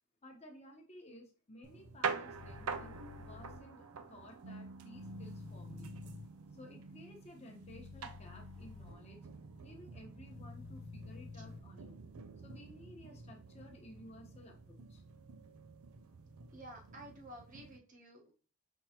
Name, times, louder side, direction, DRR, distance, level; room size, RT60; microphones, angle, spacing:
voice 1, 0.2-5.9 6.5-9.3 9.6-12.1 12.4-15.0, left 1 dB, 30° left, 1 dB, 1.0 m, -55 dB
sound 1, 1.6-17.8, right 5 dB, 85° right, 0.5 m, -47 dB
sound 2, 2.3-3.6 4.9-6.3 7.6-8.9 10.3-11.6, left 5 dB, 60° left, 0.3 m, -50 dB
voice 2, 16.5-18.3, right 1 dB, 35° right, 1 dB, 1.0 m, -52 dB
5.4 x 3.0 x 2.8 m, 0.38 s
head